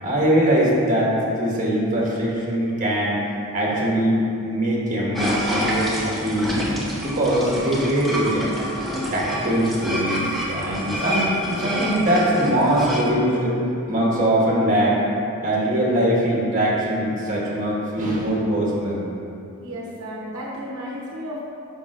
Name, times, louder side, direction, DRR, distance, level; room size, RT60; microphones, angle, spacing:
voice 1, 0.0-1.1 1.4-3.2 3.5-6.6 7.0-8.5 8.8-13.6 13.9-15.0 15.4-19.0, right 1 dB, 35° right, -5 dB, 1.5 m, -22 dB
sound 1, 5.1-13.1, equal, ahead, 0.8 m, -27 dB
voice 2, 19.6-21.4, equal, 75° right, -4 dB, 0.9 m, -33 dB
8.9 x 5.6 x 2.5 m, 2.7 s
head